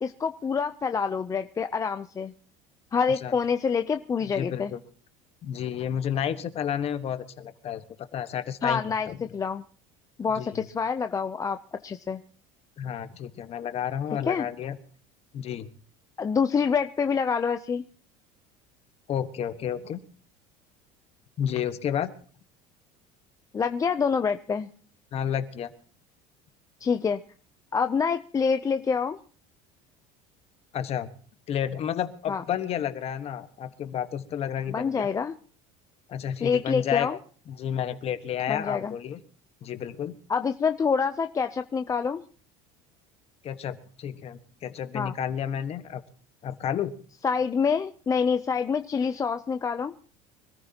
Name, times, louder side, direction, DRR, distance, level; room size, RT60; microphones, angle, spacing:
voice 1, 0.0-2.3 2.9-4.7 8.6-9.6 10.2-11.6 11.8-12.2 14.3-14.5 16.2-17.8 23.5-24.7 26.8-27.2 27.7-29.2 32.3-32.4 34.7-35.3 36.4-37.2 38.5-38.9 40.3-42.2 44.9-45.1 47.2-49.9, left 6 dB, 20° left, 8 dB, 0.6 m, -26 dB
voice 2, 4.3-4.8 5.4-7.8 8.1-9.2 10.4-10.7 12.8-14.8 15.3-15.7 19.1-20.0 21.4-22.1 25.1-25.7 30.7-31.1 31.5-35.1 36.1-37.2 37.5-39.2 39.6-40.1 43.4-46.0 46.4-46.9, left 9 dB, 40° left, 10 dB, 1.4 m, -31 dB
25.0 x 14.0 x 2.9 m, 0.42 s
cardioid pair, 130°, 16 cm